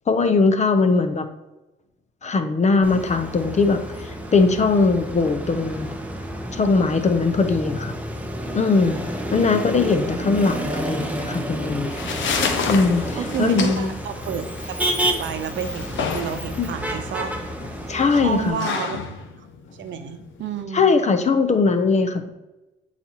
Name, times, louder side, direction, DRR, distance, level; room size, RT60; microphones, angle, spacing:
voice 1, 0.1-1.2 2.2-5.9 6.5-8.0 8.5-9.0 9.3-11.9 12.7-13.9 16.6-16.7 17.9-18.7 20.7-22.3, left 4 dB, 35° left, 8 dB, 0.7 m, -20 dB
Motor vehicle (road), 2.8-18.5, right 1 dB, 5° right, 0.9 m, -30 dB
sound 1, 11.6-20.6, left 6 dB, 70° left, 0.8 m, -30 dB
voice 2, 13.2-17.6 18.1-19.0 19.4-19.5 19.8-20.9, right 7 dB, 70° right, 8 dB, 0.7 m, -30 dB
8.5 x 4.1 x 3.0 m, 1.0 s
cardioid pair, 90°, 20 cm